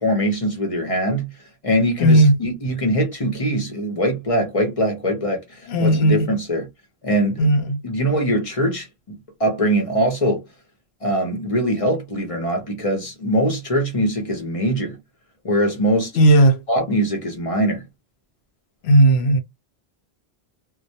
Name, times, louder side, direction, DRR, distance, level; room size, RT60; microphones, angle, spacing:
voice 1, 0.0-1.3 1.6-6.7 7.0-7.5 7.8-8.9 9.4-10.4 11.0-15.0 15.4-16.2 16.7-17.8, equal, 35° left, 0.7 m, -22 dB
voice 2, 2.0-2.3 5.7-6.3 7.4-7.8 16.2-16.6 18.8-19.4, right 1 dB, 75° left, 0.8 m, -14 dB
2.2 x 2.1 x 2.7 m
omnidirectional pair, 1.1 m